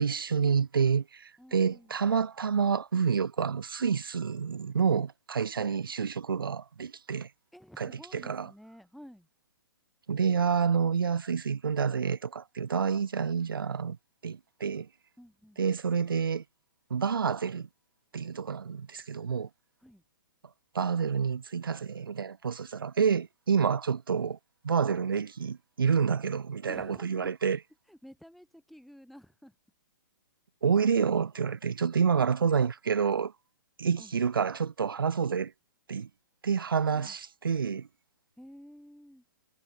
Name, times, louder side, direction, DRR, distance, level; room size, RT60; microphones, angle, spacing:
voice 1, 0.0-7.3 7.8-8.5 10.1-14.0 14.2-14.9 15.6-16.4 16.9-17.7 18.1-19.5 20.7-24.4 24.6-27.6 30.6-33.3 33.8-35.5 35.9-36.1 36.4-37.9, right 6 dB, 90° right, 0.5 m, -28 dB
voice 2, 1.4-2.0 7.5-9.3 15.2-15.6 19.8-20.0 26.7-27.3 27.8-29.6 34.0-34.1 36.9-37.2 38.4-39.2, equal, ahead, 2.3 m, -51 dB
hypercardioid pair, 130°, 11 cm